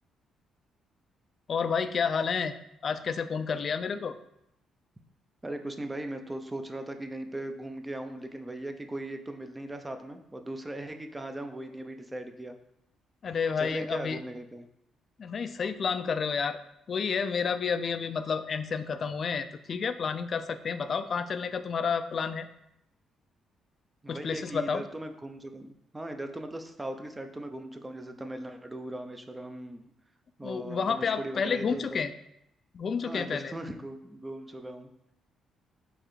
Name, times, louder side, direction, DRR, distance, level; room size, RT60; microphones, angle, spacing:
voice 1, 1.5-2.5 2.8-4.1 13.2-14.2 15.2-16.6 16.9-22.5 24.1-24.8 30.4-32.1 32.7-33.5, left 6 dB, 50° left, 11 dB, 0.3 m, -30 dB
voice 2, 5.4-12.6 13.6-14.7 24.0-29.9 30.4-32.0 33.1-35.1, right 1 dB, 15° right, 6 dB, 0.4 m, -39 dB
4.7 x 3.2 x 3.1 m, 0.81 s
cardioid pair, 90°, 0 cm